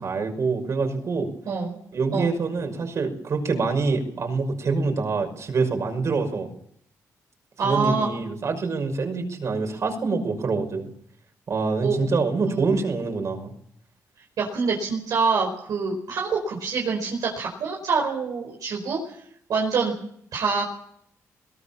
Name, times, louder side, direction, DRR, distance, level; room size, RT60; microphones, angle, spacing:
voice 1, 0.0-1.3 1.9-6.5 7.6-10.9 11.5-13.5, right 4 dB, 55° right, 4 dB, 6.0 m, -25 dB
voice 2, 1.5-1.8 2.1-2.3 7.6-8.1 11.8-12.0 12.5-12.8 14.4-19.2 19.5-19.9 20.3-20.6, right 5 dB, 75° right, -1 dB, 4.8 m, -25 dB
22.0 x 19.0 x 7.3 m, 0.69 s
cardioid pair, 80°, 6 cm